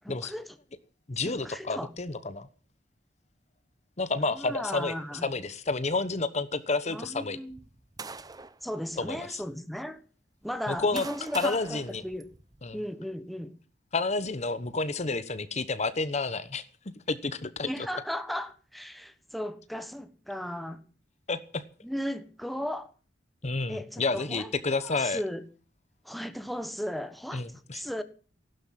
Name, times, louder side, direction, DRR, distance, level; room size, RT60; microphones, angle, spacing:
voice 1, 0.0-0.6 1.2-1.9 4.2-5.3 6.9-7.6 8.0-8.1 8.6-10.0 10.4-12.3 12.7-13.6 17.6-20.8 21.8-22.9 23.7-24.5 24.8-25.4 26.0-28.0, equal, ahead, 1.3 m, -36 dB
voice 2, 1.1-2.5 4.0-4.9 5.2-7.4 9.0-9.4 10.7-11.0 11.3-12.0 12.6-12.8 13.9-16.6 17.1-17.7 21.3-21.6 23.4-25.2 27.3-27.8, left 3 dB, 40° left, 1.0 m, -30 dB
sound 1, 7.5-8.6 9.4-9.5 10.4-12.8, right 4 dB, 20° right, 0.8 m, -44 dB
15.5 x 12.0 x 7.5 m
head